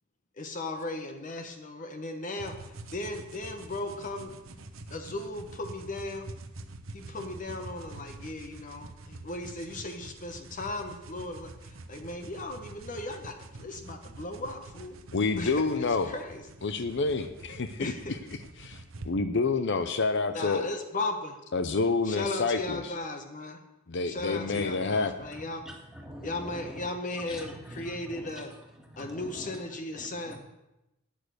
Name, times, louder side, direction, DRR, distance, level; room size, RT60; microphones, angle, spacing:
voice 1, 0.4-4.3 4.9-6.3 6.9-15.0 15.4-16.4 17.8-18.1 20.3-21.4 22.1-23.6 24.1-25.6 26.2-28.5 29.0-30.4, left 2 dB, 40° left, 6 dB, 1.1 m, -37 dB
sound 1, 2.4-19.1, right 2 dB, 70° right, 1.1 m, -46 dB
voice 2, 15.1-16.1 16.6-20.7 21.5-22.9 23.9-25.3, left 4 dB, 60° left, 10 dB, 0.7 m, -28 dB
voice 3, 24.3-24.7 25.7-26.7 27.3-28.3 29.1-29.6 30.0-30.4, equal, 5° right, 0 dB, 2.1 m, -44 dB
12.5 x 9.1 x 6.6 m, 0.94 s
head